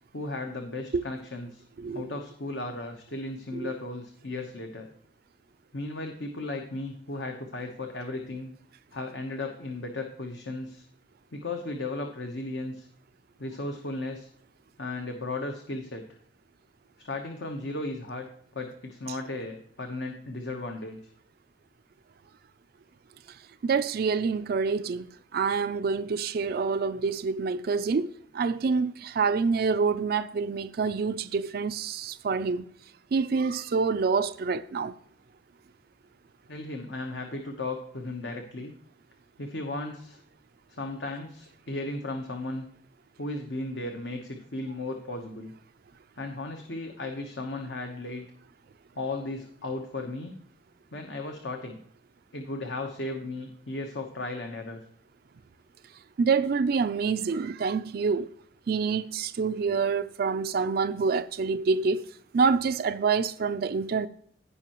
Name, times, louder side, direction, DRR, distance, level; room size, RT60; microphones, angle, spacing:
voice 1, 0.1-1.6 1.9-4.9 5.7-8.5 8.9-10.8 11.3-12.9 13.4-14.3 14.8-16.0 17.0-18.3 18.5-21.0 36.5-38.7 39.4-40.2 40.8-42.6 43.2-45.5 46.2-48.3 48.9-50.3 50.9-51.8 52.3-54.8, left 2 dB, 70° left, 1.1 m, -35 dB
voice 2, 23.6-25.0 25.3-32.6 33.1-34.9 56.2-58.3 58.7-62.1 62.3-64.1, right 5 dB, 55° right, 0.4 m, -27 dB
16.5 x 5.5 x 3.0 m
head